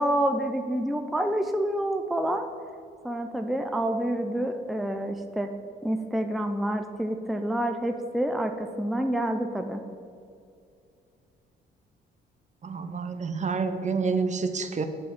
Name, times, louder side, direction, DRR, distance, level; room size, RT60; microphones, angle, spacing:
voice 1, 0.0-2.5 3.0-5.5 5.8-9.8, right 1 dB, ahead, 6 dB, 0.5 m, -28 dB
voice 2, 12.6-14.8, right 4 dB, 35° right, 8 dB, 0.8 m, -28 dB
7.6 x 6.0 x 5.1 m, 2.4 s
cardioid pair, 90°, 20 cm